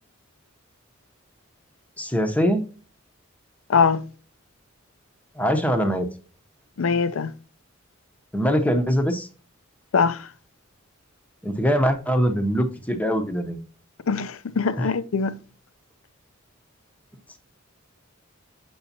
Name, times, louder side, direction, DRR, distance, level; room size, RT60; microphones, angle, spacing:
voice 1, 2.0-2.6 5.4-6.1 8.3-9.3 11.4-13.6 14.8-14.9, equal, 5° left, 0.8 m, -22 dB
voice 2, 3.7-4.0 6.8-7.3 9.9-10.3 14.1-15.4, left 5 dB, 70° left, 0.5 m, -22 dB
7.1 x 6.1 x 2.7 m
head